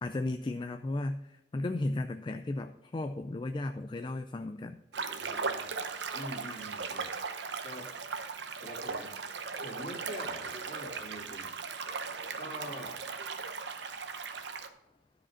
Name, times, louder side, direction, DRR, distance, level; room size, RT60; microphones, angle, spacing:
voice 1, 0.0-4.8, left 2 dB, 25° left, 8 dB, 0.3 m, -35 dB
sound 1, 4.9-14.7, right 5 dB, 75° right, 0.8 m, -38 dB
voice 2, 5.2-5.8 6.1-7.1 7.6-7.9 8.6-9.1 9.6-11.5 12.4-13.0, equal, 45° left, -3 dB, 2.6 m, -44 dB
12.5 x 5.0 x 5.7 m, 0.91 s
head